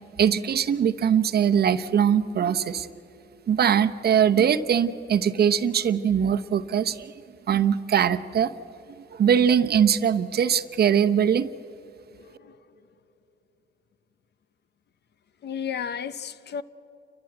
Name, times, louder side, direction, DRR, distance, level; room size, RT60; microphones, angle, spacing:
voice 1, 0.2-2.9 3.5-7.1 7.5-8.5 9.1-11.5, right 8 dB, 55° right, 0.9 m, -21 dB
voice 2, 12.1-12.6 15.4-16.6, left 7 dB, 60° left, 0.9 m, -33 dB
30.0 x 14.0 x 7.9 m
cardioid pair, 90°, 20 cm